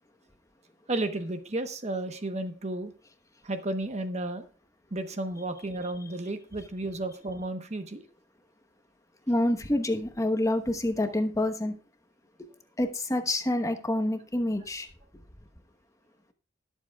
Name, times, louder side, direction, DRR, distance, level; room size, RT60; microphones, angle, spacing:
voice 1, 0.9-2.9 3.4-4.4 4.9-8.0, right 2 dB, 35° right, 1.0 m, -33 dB
voice 2, 9.3-11.7 12.4-12.5 12.8-14.9, left 1 dB, 15° left, 1.0 m, -27 dB
20.0 x 7.3 x 2.3 m
head